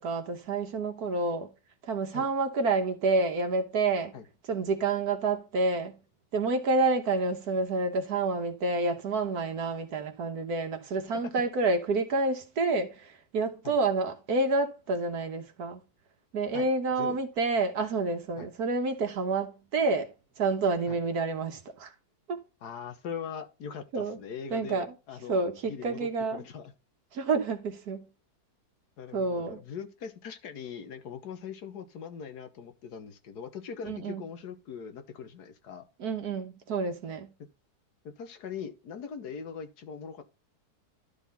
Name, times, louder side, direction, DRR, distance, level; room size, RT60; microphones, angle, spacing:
voice 1, 0.0-1.5 1.8-4.1 4.5-5.9 6.3-15.8 16.3-20.1 20.4-21.9 22.3-22.4 23.9-24.2 24.5-24.9 25.3-26.4 27.1-28.0 29.1-29.6 33.8-34.2 36.0-37.3, right 3 dB, 70° right, 1.6 m, -28 dB
voice 2, 22.6-26.7 29.0-35.9 38.0-40.2, left 7 dB, 80° left, 1.7 m, -41 dB
12.0 x 4.0 x 4.1 m
omnidirectional pair, 1.7 m